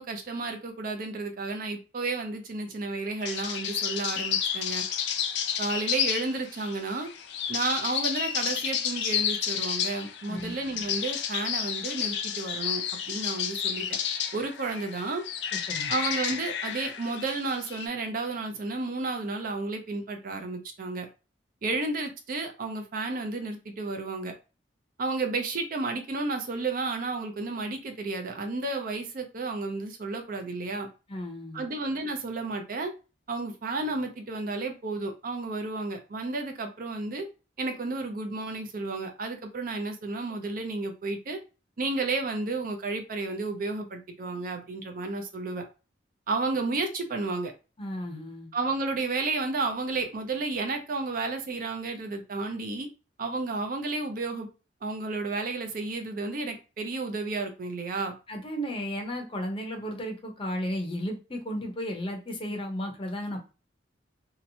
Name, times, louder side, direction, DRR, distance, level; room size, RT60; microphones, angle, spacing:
voice 1, 0.0-4.8 5.6-7.1 7.5-13.9 14.3-15.2 15.9-21.1 21.6-24.3 25.0-30.9 31.5-32.9 33.3-37.3 37.6-41.4 41.8-45.6 46.3-47.5 48.5-52.9 53.2-54.5 54.8-58.1, right 3 dB, 50° right, 5 dB, 0.5 m, -32 dB
sound 1, 3.2-17.9, left 8 dB, 70° left, 0.4 m, -31 dB
voice 2, 15.5-15.9 31.1-31.7 47.8-48.5 58.3-63.4, equal, 30° left, 2 dB, 0.6 m, -34 dB
2.8 x 2.0 x 2.6 m, 0.31 s
head